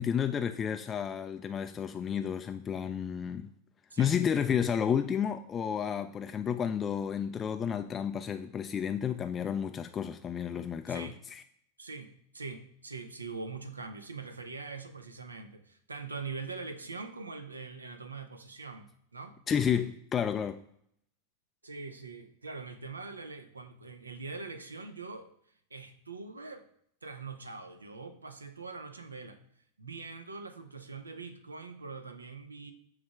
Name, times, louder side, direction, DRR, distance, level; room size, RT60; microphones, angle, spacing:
voice 1, 0.0-3.5 4.0-11.4 19.5-20.6, left 8 dB, 25° left, 0.3 m, -31 dB
voice 2, 10.9-11.2 11.8-19.4 21.6-25.3 25.7-26.7 27.0-29.4 29.8-32.7, right 4 dB, 75° right, 0.7 m, -43 dB
7.1 x 3.3 x 4.8 m
figure-of-eight pair, 90°, 0 cm